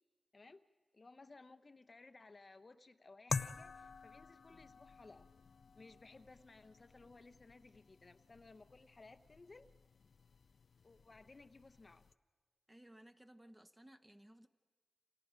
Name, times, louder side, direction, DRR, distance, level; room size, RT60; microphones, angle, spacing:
voice 1, 0.3-0.6 0.9-5.3 5.7-9.7 10.8-12.1, left 3 dB, 45° left, 10 dB, 0.8 m, -59 dB
sound 1, 3.3-12.1, left 5 dB, 75° left, 0.6 m, -48 dB
voice 2, 12.7-14.5, right 1 dB, 15° right, 8 dB, 1.2 m, -60 dB
29.0 x 27.5 x 5.2 m, 1.5 s
wide cardioid pair, 75°, 0 cm